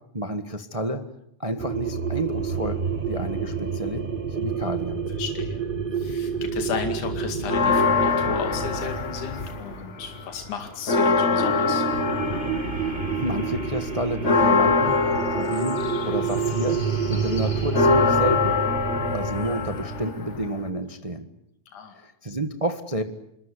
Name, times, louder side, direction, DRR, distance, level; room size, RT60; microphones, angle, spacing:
voice 1, 0.1-1.0 1.4-4.0 4.4-5.0 12.8-16.8 17.1-18.6 19.1-21.3 21.9-23.0, right 1 dB, 50° right, 8 dB, 0.4 m, -30 dB
sound 1, 1.6-10.7 11.4-20.1, right 6 dB, 30° right, 1.0 m, -29 dB
voice 2, 5.2-5.6 6.0-11.9 21.7-22.0, left 7 dB, 80° left, 5 dB, 3.8 m, -34 dB
sound 2, 7.4-9.8 10.2-20.7, left 4 dB, 40° left, 1.1 m, -24 dB
27.0 x 23.0 x 8.5 m, 0.77 s
omnidirectional pair, 3.5 m